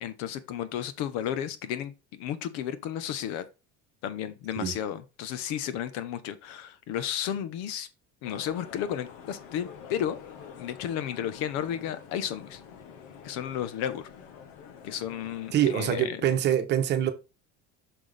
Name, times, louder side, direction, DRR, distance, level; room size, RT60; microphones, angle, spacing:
voice 1, 0.0-3.4 4.0-7.9 8.2-10.2 10.6-12.6 13.2-14.1 14.8-16.2, left 10 dB, 70° left, 1.1 m, -33 dB
sound 1, 8.2-16.0, left 7 dB, 85° left, 1.5 m, -47 dB
voice 2, 15.5-17.1, right 10 dB, 35° right, 1.0 m, -25 dB
6.1 x 6.1 x 3.4 m
cardioid pair, 170°, 29 cm